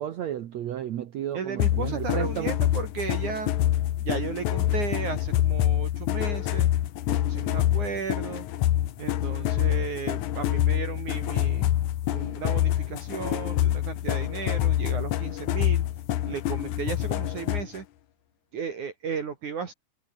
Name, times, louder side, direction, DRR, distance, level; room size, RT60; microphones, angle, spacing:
voice 1, 0.0-2.5, right 11 dB, 85° right, 1.5 m, -33 dB
voice 2, 1.3-3.5 4.0-6.7 7.1-8.5 9.0-11.8 12.1-15.8 16.3-17.9 18.5-19.7, right 6 dB, 50° right, 3.4 m, -34 dB
sound 1, 1.6-17.8, left 13 dB, 70° left, 2.0 m, -26 dB
omnidirectional pair, 4.9 m